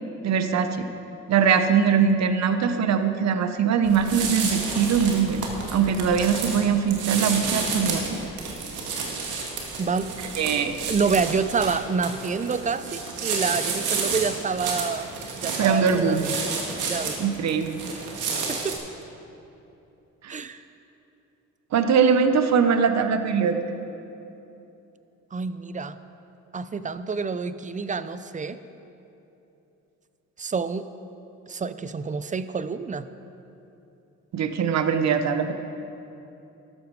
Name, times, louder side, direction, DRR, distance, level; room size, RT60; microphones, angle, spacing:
voice 1, 0.2-0.9 1.3-5.4 5.7-8.2 10.4-10.8 15.6-16.2 17.2-17.8 20.2-20.4 21.7-23.6 34.3-35.5, right 6 dB, 60° right, 9 dB, 1.0 m, -22 dB
sound 1, 3.8-18.7, right 4 dB, 85° right, 2.1 m, -31 dB
voice 2, 9.8-10.1 10.9-15.1 15.4-16.3 16.8-17.2 17.8-18.0 18.5-18.7 20.3-20.6 25.3-26.0 26.5-28.6 30.4-30.8 31.5-33.0, right 5 dB, 25° right, 12 dB, 0.5 m, -28 dB
13.0 x 12.0 x 4.8 m, 2.9 s
cardioid pair, 90°, 30 cm